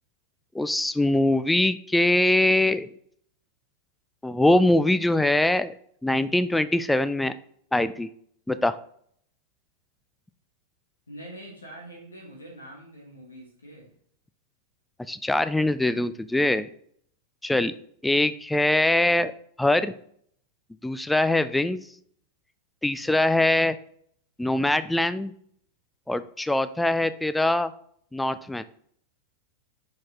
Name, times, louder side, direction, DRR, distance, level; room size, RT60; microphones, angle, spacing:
voice 1, 0.5-2.9 4.2-5.7 6.0-7.3 7.7-8.1 8.5-8.8 15.1-16.7 17.4-17.7 18.0-19.3 19.6-19.9 20.8-21.8 22.8-23.8 24.4-25.3 26.1-27.7 28.1-28.6, left 1 dB, 5° left, 13 dB, 0.3 m, -22 dB
voice 2, 11.1-13.9, right 1 dB, 75° left, 0 dB, 1.5 m, -44 dB
5.7 x 5.1 x 3.5 m, 0.64 s
figure-of-eight pair, 90°, 0 cm